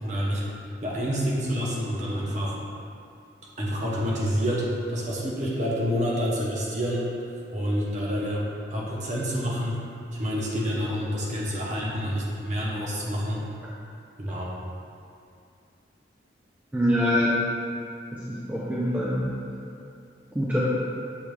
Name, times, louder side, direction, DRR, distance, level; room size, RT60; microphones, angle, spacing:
voice 1, 0.0-0.4 0.8-2.6 3.6-7.1 7.5-8.4 8.7-9.8 10.2-13.4 14.2-14.5, equal, 40° right, -5 dB, 0.8 m, -28 dB
voice 2, 16.7-17.4 18.1-18.2 18.5-19.3 20.3-20.6, equal, 10° right, -8 dB, 0.4 m, -24 dB
6.9 x 2.3 x 3.2 m, 2.5 s
head